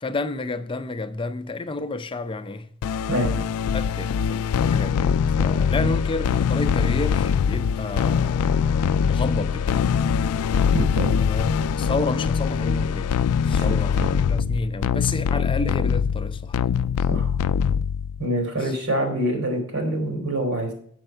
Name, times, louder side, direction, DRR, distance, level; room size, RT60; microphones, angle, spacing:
voice 1, 0.0-2.7 3.7-9.9 11.2-13.2 13.4-16.6 18.6-18.7, left 3 dB, 25° left, 0.5 m, -30 dB
sound 1, 2.8-18.2, left 7 dB, 80° left, 0.3 m, -23 dB
voice 2, 10.7-11.2 13.6-13.7 14.0-14.1 17.1-17.3 18.2-20.7, right 1 dB, 80° right, 3.3 m, -25 dB
7.8 x 6.7 x 4.4 m
head